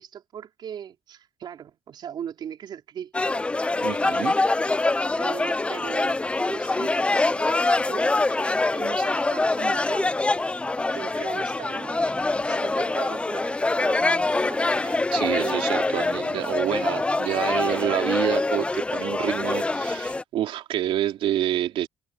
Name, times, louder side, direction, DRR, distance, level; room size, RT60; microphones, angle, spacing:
voice 1, 0.0-3.4 5.2-10.2 10.9-12.2 12.4-14.3 15.3-15.9, right 9 dB, 55° right, 4.2 m, -39 dB
sound 1, 3.1-20.2, left 2 dB, 10° left, 0.6 m, -24 dB
voice 2, 3.8-4.4 14.8-21.9, right 12 dB, 75° right, 3.4 m, -28 dB
sound 2, 11.7-15.2 15.5-15.7 16.0-17.6, right 5 dB, 25° right, 1.7 m, -41 dB
cardioid pair, 130°, 9 cm